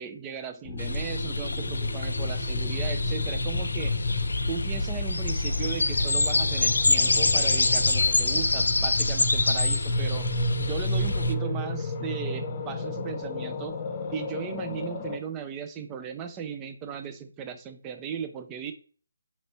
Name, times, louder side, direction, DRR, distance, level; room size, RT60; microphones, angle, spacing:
voice 1, 0.0-3.9 4.5-10.3 10.6-13.8 14.1-18.7, right 7 dB, 20° right, 8 dB, 0.5 m, -37 dB
sound 1, 0.6-15.2, left 2 dB, 30° left, 0.8 m, -31 dB
sound 2, 0.8-11.3, left 2 dB, 75° left, 0.3 m, -26 dB
5.2 x 3.0 x 2.9 m, 0.40 s
figure-of-eight pair, 150°, 0 cm